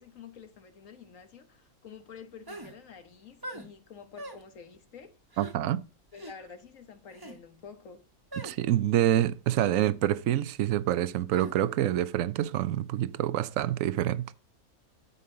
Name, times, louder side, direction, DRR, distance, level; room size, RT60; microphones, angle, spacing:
voice 1, 0.0-5.2 6.1-8.0, left 6 dB, 65° left, 1.7 m, -49 dB
sound 1, 2.5-2.7 3.4-3.7 4.2-4.4 5.3-5.5 6.1-6.3 7.1-7.4 8.3-8.5 9.6-9.8 11.3-11.5, right 1 dB, 15° right, 1.4 m, -41 dB
voice 2, 5.4-5.8 8.4-14.3, right 12 dB, 70° right, 1.0 m, -27 dB
13.0 x 5.5 x 3.8 m
omnidirectional pair, 1.5 m